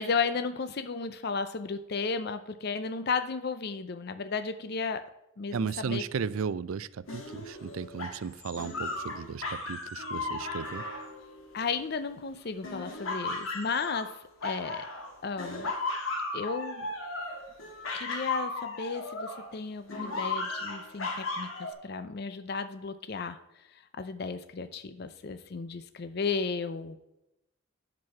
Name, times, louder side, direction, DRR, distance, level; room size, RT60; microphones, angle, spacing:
voice 1, 0.0-5.0 5.4-6.0 11.5-14.9 15.2-15.7 16.3-16.9 17.9-23.4 24.0-27.0, left 5 dB, 50° left, 0.5 m, -34 dB
voice 2, 5.5-10.8, right 6 dB, 85° right, 0.4 m, -35 dB
sound 1, 7.1-12.1 12.6-15.1 15.4-19.5 19.9-21.7, left 3 dB, 75° left, 1.9 m, -36 dB
7.7 x 6.2 x 5.6 m
head